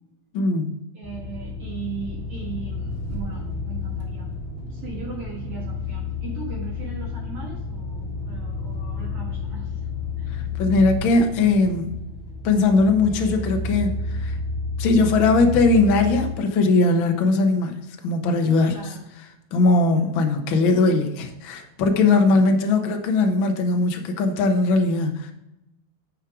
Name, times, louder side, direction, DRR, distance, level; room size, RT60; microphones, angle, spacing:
voice 1, 0.3-0.7 10.3-11.9 12.4-14.4 14.8-17.8 18.0-18.8 19.5-25.3, left 3 dB, 60° left, 4 dB, 1.4 m, -20 dB
voice 2, 0.9-4.3 4.7-9.9 10.2-10.4 18.7-19.1 19.9-20.1, right 5 dB, 55° right, -4 dB, 2.4 m, -38 dB
sound 1, 1.0-16.3, left 4 dB, 25° left, 1.4 m, -31 dB
9.6 x 6.3 x 4.8 m, 0.88 s
omnidirectional pair, 3.5 m